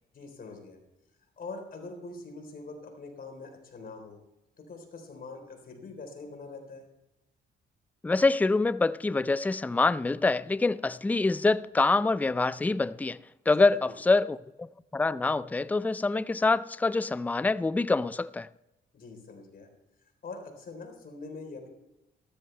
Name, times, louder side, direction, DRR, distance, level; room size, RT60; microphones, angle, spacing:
voice 1, 0.1-0.8 1.4-4.2 4.6-6.9 13.5-14.0 18.9-19.7 20.2-21.7, left 3 dB, 50° left, 3.8 m, -43 dB
voice 2, 8.0-13.2 13.5-18.5, left 3 dB, 10° left, 0.4 m, -25 dB
13.5 x 13.5 x 3.3 m
cardioid pair, 90°, 20 cm